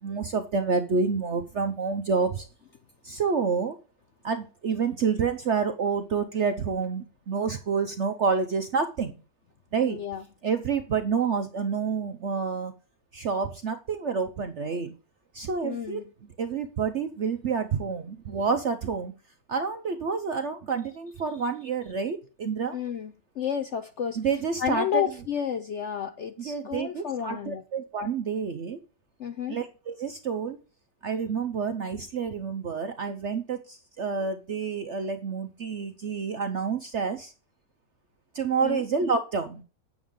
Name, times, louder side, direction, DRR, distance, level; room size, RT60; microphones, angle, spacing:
voice 1, 0.0-2.5 3.0-3.8 4.2-9.1 9.7-10.0 10.4-12.7 13.1-14.9 15.3-19.1 19.5-22.8 24.2-25.0 26.4-28.8 29.5-30.6 31.0-37.3 38.3-39.6, right 5 dB, 60° right, 0.7 m, -28 dB
voice 2, 9.8-10.2 15.6-16.0 22.7-24.2 24.6-27.6 29.2-29.6 38.6-38.8, left 8 dB, 80° left, 0.6 m, -31 dB
8.9 x 7.1 x 3.7 m
omnidirectional pair, 2.0 m